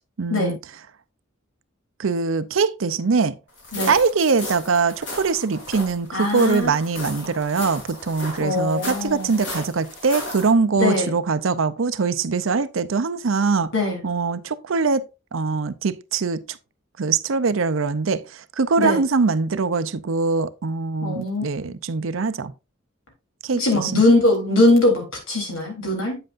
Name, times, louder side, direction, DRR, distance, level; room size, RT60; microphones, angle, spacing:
voice 1, 0.2-0.6 2.0-3.3 3.9-13.7 14.0-15.0 15.3-16.4 17.0-18.2 18.6-22.5 23.4-24.0, right 4 dB, 70° right, 0.6 m, -22 dB
sound 1, 3.6-10.5, left 2 dB, 60° left, 4.2 m, -35 dB
voice 2, 6.1-6.7 7.2-7.3 8.4-9.3 10.8-11.1 13.7-14.0 18.8-19.0 21.0-21.7 23.5-26.2, left 2 dB, 75° left, 3.6 m, -21 dB
8.7 x 7.8 x 2.5 m
head